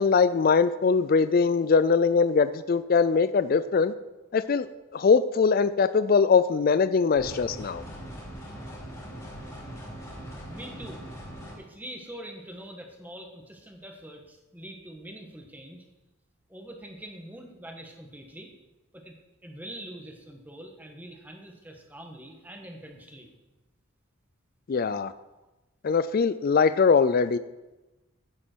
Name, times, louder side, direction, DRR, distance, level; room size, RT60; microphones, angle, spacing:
voice 1, 0.0-3.9 4.3-4.7 4.9-7.8 24.7-25.1 25.8-27.4, left 5 dB, 45° left, 14 dB, 0.3 m, -22 dB
sound 1, 7.2-11.5, equal, 15° left, 3.4 m, -41 dB
voice 2, 10.5-11.0 11.6-15.8 16.5-18.5 18.9-19.2 19.4-23.3, right 1 dB, 10° right, 2 dB, 1.4 m, -44 dB
15.0 x 7.4 x 4.5 m, 1.1 s
head